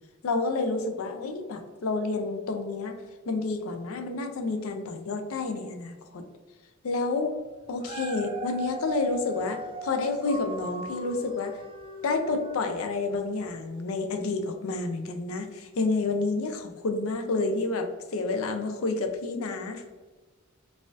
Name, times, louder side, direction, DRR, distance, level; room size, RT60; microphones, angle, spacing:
voice 1, 0.2-3.0 3.3-6.2 6.8-7.4 7.7-11.6 12.0-19.8, left 3 dB, 75° left, 6 dB, 0.5 m, -29 dB
Dog, 7.6-13.0 13.5-13.6, right 3 dB, 25° right, 0.3 m, -40 dB
4.0 x 2.4 x 2.5 m, 1.3 s
head